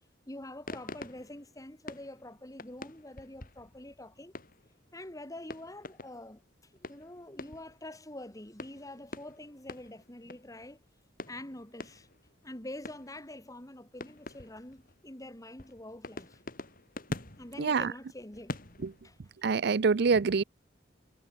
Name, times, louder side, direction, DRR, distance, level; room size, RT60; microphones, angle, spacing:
voice 1, 0.3-4.3 4.9-10.8 11.2-12.1 12.4-16.4 17.4-18.6 19.0-19.2, left 1 dB, 20° left, 2.7 m, -46 dB
sound 1, 0.7-4.8 5.4-6.3 6.8-8.0 8.6-10.7 11.2-12.5 12.8-13.3 14.0-15.0 15.6-19.2, left 2 dB, 50° left, 4.2 m, -45 dB
voice 2, 17.6-17.9 18.8-18.9 19.4-20.4, right 5 dB, 60° right, 0.5 m, -25 dB
head